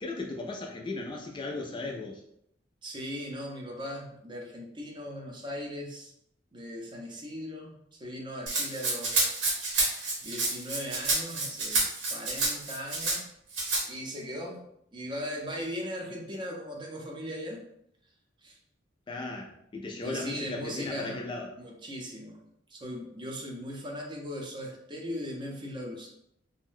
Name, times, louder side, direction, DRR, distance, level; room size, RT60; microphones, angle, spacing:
voice 1, 0.0-2.2 19.1-21.5, left 2 dB, 25° left, 0 dB, 0.3 m, -36 dB
voice 2, 2.8-6.1 6.5-9.3 10.2-11.8 12.1-13.2 13.9-14.6 14.9-17.6 18.4-18.6 20.0-21.2 21.6-22.4 22.7-26.1, equal, 25° right, 0 dB, 0.6 m, -38 dB
Rattle (instrument), 8.5-13.2 13.5-13.8, right 3 dB, 90° right, 1.0 m, -29 dB
2.6 x 2.1 x 3.5 m, 0.75 s
head